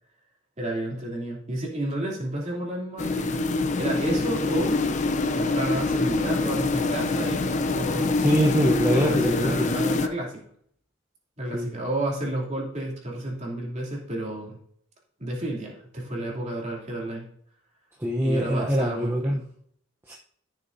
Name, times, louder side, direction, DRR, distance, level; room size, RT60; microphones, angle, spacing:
voice 1, 0.6-3.4 3.8-4.8 5.3-8.2 8.9-10.4 11.4-14.6 15.2-17.2 18.2-19.4, right 1 dB, 35° right, -2 dB, 2.8 m, -31 dB
sound 1, 3.0-10.1, left 3 dB, 35° left, 0.5 m, -25 dB
voice 2, 8.2-9.8 11.5-11.7 18.0-19.4 20.1-20.2, equal, 10° right, -1 dB, 0.8 m, -23 dB
14.0 x 6.8 x 2.7 m, 0.64 s
head